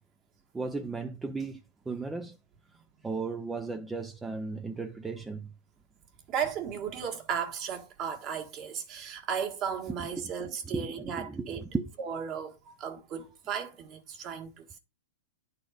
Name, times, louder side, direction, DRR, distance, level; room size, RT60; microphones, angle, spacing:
voice 1, 0.5-1.6 1.9-2.4 3.0-5.5 10.0-11.9, right 4 dB, 10° right, 0.5 m, -35 dB
voice 2, 6.3-11.6 12.0-14.8, right 7 dB, 35° right, 1.6 m, -35 dB
10.5 x 4.1 x 4.9 m
hypercardioid pair, 140°, 0 cm